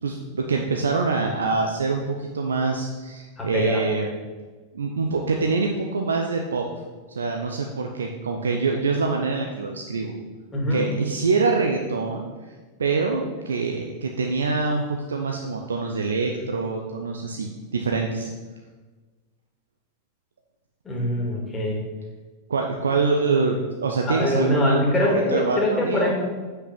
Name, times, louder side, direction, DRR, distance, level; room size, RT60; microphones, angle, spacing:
voice 1, 0.0-4.1 4.7-6.7 7.1-10.1 10.7-12.5 12.8-18.3 22.5-26.1, right 4 dB, 70° right, 2 dB, 0.8 m, -25 dB
voice 2, 3.4-3.8 10.5-10.9 20.8-21.8 24.1-26.1, left 1 dB, 15° left, -2 dB, 2.6 m, -23 dB
8.3 x 5.8 x 5.9 m, 1.3 s
figure-of-eight pair, 90°, 0 cm